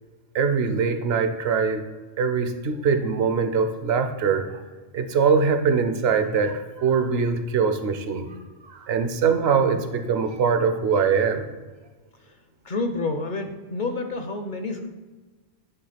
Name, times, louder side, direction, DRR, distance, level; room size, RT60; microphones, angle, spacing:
voice 1, 0.3-1.8 2.2-4.6 4.9-8.4 8.6-11.5, right 5 dB, 60° right, 8 dB, 0.9 m, -22 dB
voice 2, 12.6-14.9, left 3 dB, 50° left, 7 dB, 0.7 m, -29 dB
9.3 x 3.6 x 5.7 m, 1.3 s
omnidirectional pair, 1.3 m